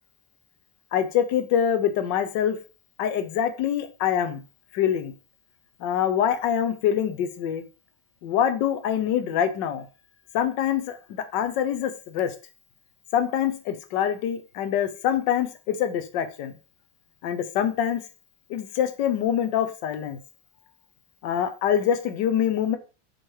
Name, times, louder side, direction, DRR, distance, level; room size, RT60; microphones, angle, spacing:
voice 1, 0.9-2.6 3.0-4.4 4.7-5.1 5.8-7.6 8.2-9.8 10.3-11.0 11.3-12.3 13.1-16.5 17.2-18.0 18.5-20.2 21.2-22.8, left 9 dB, 75° left, 8 dB, 1.4 m, -25 dB
7.4 x 3.2 x 4.5 m, 0.33 s
omnidirectional pair, 2.0 m